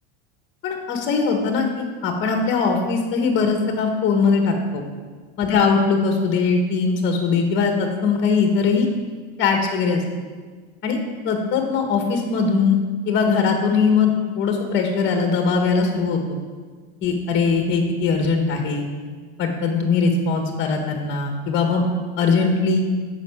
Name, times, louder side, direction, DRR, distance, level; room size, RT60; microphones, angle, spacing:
voice 1, 0.6-4.8 5.4-8.9 9.4-10.0 10.8-11.0 11.3-16.4 17.0-18.9 19.4-21.9 22.2-22.8, left 5 dB, 35° left, 3 dB, 1.7 m, -20 dB
8.2 x 6.5 x 8.3 m, 1.5 s
supercardioid pair, 125°, 32 cm